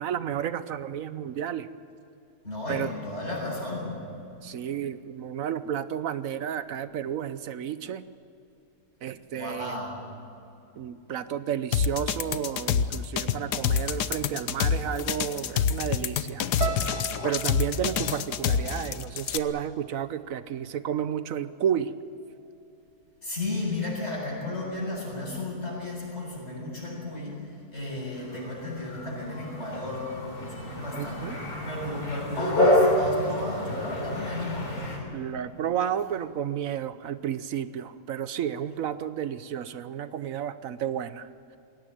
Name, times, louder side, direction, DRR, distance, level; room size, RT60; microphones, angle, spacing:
voice 1, 0.0-1.7 2.7-2.9 4.4-8.1 9.0-9.8 10.8-16.5 17.2-21.9 30.9-31.3 35.1-41.3, right 9 dB, 60° right, 13 dB, 1.1 m, -31 dB
voice 2, 2.4-4.0 9.3-10.0 23.2-35.2, left 2 dB, 40° left, -3 dB, 7.5 m, -34 dB
sound 1, 11.7-19.4, left 8 dB, 80° left, 1.4 m, -26 dB
sound 2, 16.6-20.8 21.1-21.9 22.4-22.7, right 7 dB, 90° right, 2.1 m, -40 dB
sound 3, 28.2-35.0, left 1 dB, 65° left, 3.9 m, -28 dB
21.5 x 18.0 x 9.0 m, 2.7 s
omnidirectional pair, 1.7 m